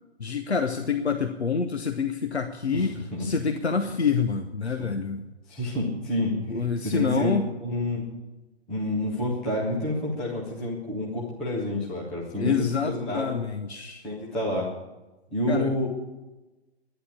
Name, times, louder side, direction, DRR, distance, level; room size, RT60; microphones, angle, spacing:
voice 1, 0.2-5.2 6.5-7.5 12.4-14.0 15.5-15.7, left 5 dB, 75° left, 7 dB, 1.1 m, -27 dB
voice 2, 2.7-3.3 5.5-8.0 8.7-13.3 14.0-14.7 15.3-15.9, left 1 dB, ahead, -6 dB, 0.4 m, -29 dB
11.0 x 10.0 x 8.6 m, 1.1 s
figure-of-eight pair, 130°, 33 cm